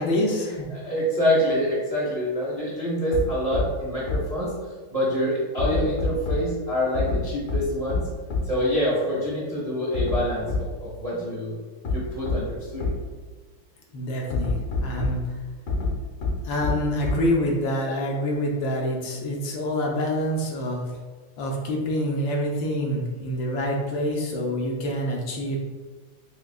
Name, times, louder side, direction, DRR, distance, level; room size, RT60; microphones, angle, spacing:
voice 1, 0.0-0.7 13.9-15.4 16.4-20.9 21.4-25.6, equal, 75° left, 0 dB, 1.2 m, -26 dB
voice 2, 0.7-4.5 4.9-8.1 8.4-11.6 11.9-12.9, equal, 75° right, -8 dB, 0.3 m, -26 dB
sound 1, 3.1-3.2 3.5-3.6 4.1-4.2 5.6-6.4 6.9-7.2 7.5-7.6 7.9-8.0 8.3-8.4 9.9-10.2 10.5-10.6 11.8-11.9 12.3-12.4 12.8-12.9 14.3-15.1 15.7-15.9 16.2-16.3 16.6-16.7 17.0-17.1, left 4 dB, 50° left, 0.9 m, -25 dB
6.0 x 2.2 x 2.3 m, 1.3 s
omnidirectional pair, 2.4 m